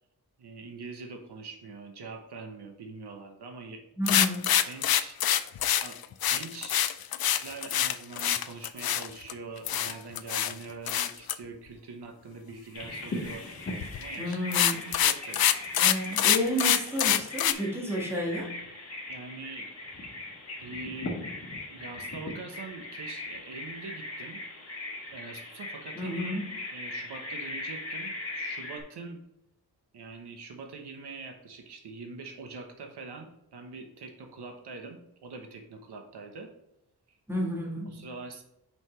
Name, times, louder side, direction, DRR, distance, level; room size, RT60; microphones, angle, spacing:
voice 1, 0.4-4.2 4.6-5.2 5.8-6.0 6.3-6.8 7.4-13.4 14.0-14.4 14.7-15.5 19.1-19.7 20.6-21.2 21.6-24.4 25.1-26.4 26.7-29.2 29.9-36.5 37.1-37.2 37.9-38.4, right 4 dB, 85° right, 3 dB, 1.1 m, -43 dB
voice 2, 4.0-4.5 14.2-15.0 15.8-18.6 25.9-26.5 37.3-38.1, equal, 5° right, -2 dB, 1.5 m, -31 dB
sound 1, 4.1-9.3 9.7-10.5 10.9-11.3 13.8-14.0 14.3-17.5, left 10 dB, 65° left, 0.5 m, -25 dB
Bird vocalization bird call bird song, 12.7-28.8, left 2 dB, 35° left, 1.9 m, -39 dB
6.1 x 5.6 x 3.2 m, 0.83 s
wide cardioid pair, 165°, 39 cm